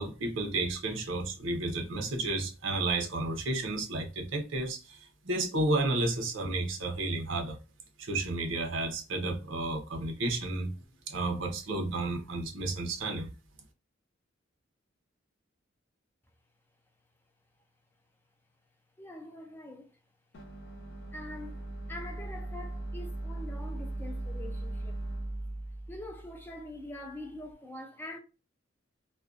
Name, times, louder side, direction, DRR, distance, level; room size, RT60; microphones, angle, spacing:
voice 1, 0.0-5.0 5.2-7.6 8.0-10.7 11.1-13.3, right 2 dB, 80° right, 0.7 m, -32 dB
voice 2, 19.0-19.9 21.1-25.0 25.9-28.2, left 1 dB, 10° left, 0.3 m, -44 dB
sound 1, 20.3-27.4, right 1 dB, 65° left, 0.6 m, -39 dB
2.5 x 2.2 x 2.3 m
head